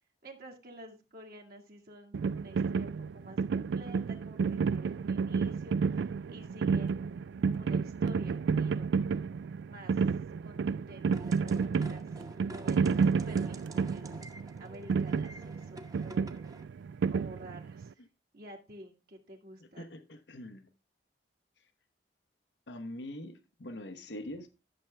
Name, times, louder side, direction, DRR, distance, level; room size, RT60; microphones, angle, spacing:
voice 1, 0.2-7.0 7.4-8.9 9.7-10.0 10.4-12.1 12.4-14.1 14.6-16.5 17.1-18.0 18.3-19.9, right 1 dB, 60° right, 1.7 m, -50 dB
sound 1, 2.1-17.9, right 5 dB, 85° right, 0.3 m, -31 dB
sound 2, 11.1-16.6, right 1 dB, 20° right, 0.9 m, -49 dB
voice 2, 19.6-20.7 22.7-24.5, left 1 dB, 85° left, 1.0 m, -43 dB
11.5 x 6.8 x 3.4 m
head